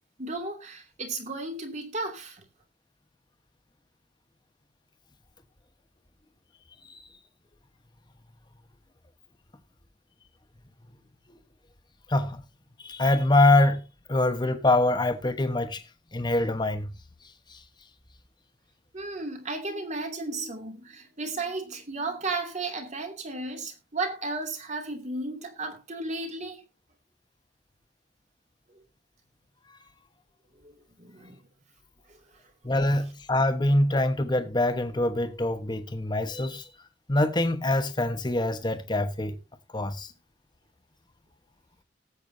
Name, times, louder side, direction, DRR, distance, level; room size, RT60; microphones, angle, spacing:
voice 1, 0.2-2.4 18.9-26.6 30.6-31.4, right 3 dB, 40° right, 2.7 m, -34 dB
voice 2, 12.1-12.4 12.8-13.8 14.1-15.8 16.1-16.9 32.6-36.7 37.1-39.4 39.7-40.1, left 2 dB, 25° left, 1.2 m, -24 dB
18.5 x 8.3 x 2.8 m
head